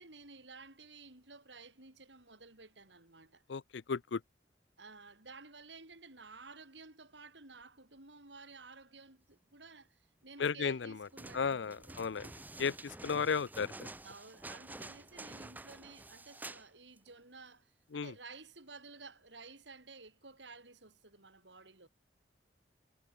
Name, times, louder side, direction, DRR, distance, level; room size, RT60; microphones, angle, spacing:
voice 1, 0.0-3.4 4.8-12.1 14.0-21.9, right 4 dB, 85° right, 6.8 m, -54 dB
voice 2, 3.5-4.2 10.4-10.9 11.3-12.3 12.6-13.7 17.9-18.1, left 5 dB, 85° left, 0.5 m, -34 dB
sound 1, 11.1-16.7 17.0-17.1, right 2 dB, 10° right, 0.6 m, -49 dB
head